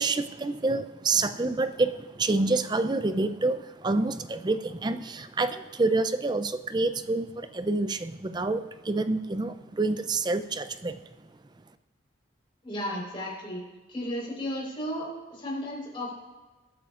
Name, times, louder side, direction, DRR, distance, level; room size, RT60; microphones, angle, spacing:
voice 1, 0.0-11.0, right 3 dB, 20° right, 10 dB, 0.4 m, -27 dB
voice 2, 12.6-13.6 13.9-16.1, equal, 25° left, -4 dB, 4.1 m, -34 dB
22.5 x 8.8 x 2.5 m, 1.2 s
head